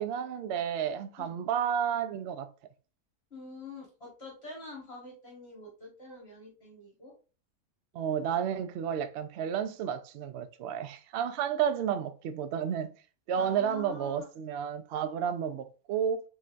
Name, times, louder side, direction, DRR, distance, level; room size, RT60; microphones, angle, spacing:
voice 1, 0.0-2.5 7.9-12.9 13.3-16.2, right 8 dB, 70° right, 0.6 m, -31 dB
voice 2, 3.3-7.1 13.3-14.3, left 3 dB, 45° left, 1.7 m, -46 dB
4.3 x 3.7 x 2.4 m
omnidirectional pair, 1.6 m